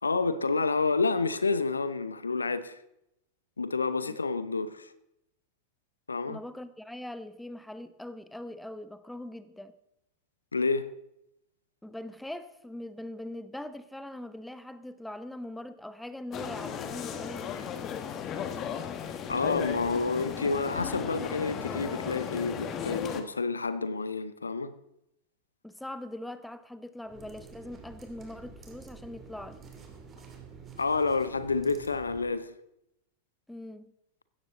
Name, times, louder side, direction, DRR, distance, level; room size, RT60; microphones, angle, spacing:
voice 1, 0.0-2.8 3.6-4.9 6.1-6.4 10.5-10.9 19.3-24.7 30.8-32.5, left 4 dB, 75° left, 0.8 m, -29 dB
voice 2, 6.3-9.7 11.8-17.6 25.6-29.6 33.5-33.9, left 1 dB, 5° left, 1.0 m, -41 dB
sound 1, 16.3-23.2, left 8 dB, 30° left, 1.7 m, -35 dB
sound 2, 27.0-32.4, right 5 dB, 25° right, 2.9 m, -49 dB
16.5 x 14.0 x 3.9 m
figure-of-eight pair, 90°, 0 cm